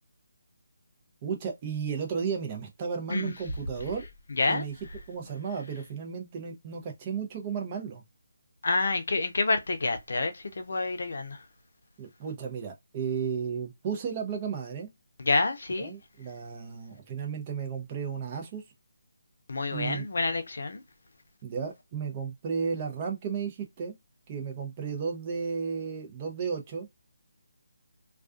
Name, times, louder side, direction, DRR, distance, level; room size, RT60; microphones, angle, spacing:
voice 1, 1.2-4.1 4.5-4.7 5.1-8.0 12.0-14.9 15.8-18.6 19.7-20.0 21.4-23.9 24.3-26.9, right 6 dB, 25° right, 0.6 m, -34 dB
voice 2, 4.3-4.6 8.6-11.4 15.2-15.9 19.5-20.8, left 3 dB, 65° left, 0.6 m, -28 dB
2.3 x 2.3 x 2.4 m
figure-of-eight pair, 165°, 0 cm